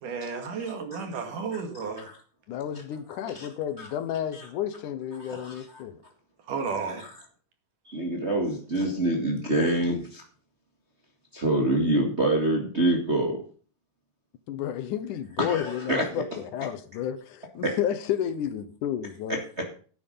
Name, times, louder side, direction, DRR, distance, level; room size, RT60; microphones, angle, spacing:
voice 1, 0.0-2.1 6.5-7.1, right 5 dB, 70° right, 6 dB, 3.7 m, -32 dB
voice 2, 2.5-6.0 14.5-19.4, left 10 dB, 70° left, 12 dB, 2.3 m, -31 dB
voice 3, 5.2-5.8 6.9-7.1 7.9-10.2 11.3-13.4 15.4-16.0 17.6-17.7, right 1 dB, 25° right, 1 dB, 1.7 m, -26 dB
11.5 x 8.9 x 5.5 m, 0.41 s
omnidirectional pair, 3.9 m